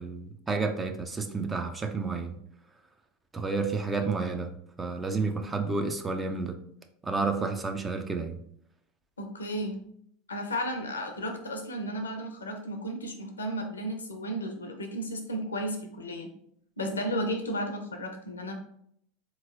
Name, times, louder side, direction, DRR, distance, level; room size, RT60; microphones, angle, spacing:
voice 1, 0.0-2.4 3.3-6.6 7.0-8.4, right 4 dB, 15° right, 6 dB, 0.4 m, -30 dB
voice 2, 9.2-9.8 10.3-16.3 16.8-18.5, equal, 80° left, 4 dB, 0.6 m, -33 dB
3.8 x 3.0 x 2.5 m, 0.70 s
figure-of-eight pair, 80°, 0 cm